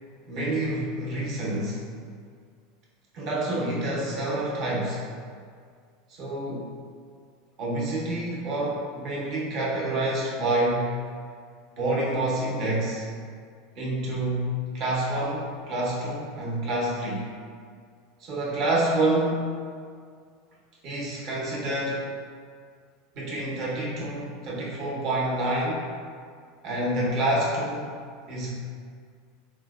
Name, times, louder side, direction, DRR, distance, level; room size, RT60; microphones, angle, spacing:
voice 1, 0.3-1.8 3.1-5.1 6.1-6.7 7.6-10.9 11.8-13.1 13.8-17.3 18.2-19.6 20.8-22.1 23.1-25.8 26.6-28.0 28.3-28.5, right 1 dB, 50° right, -5 dB, 0.8 m, -28 dB
4.2 x 2.1 x 2.3 m, 2.1 s
supercardioid pair, 115°, 0 cm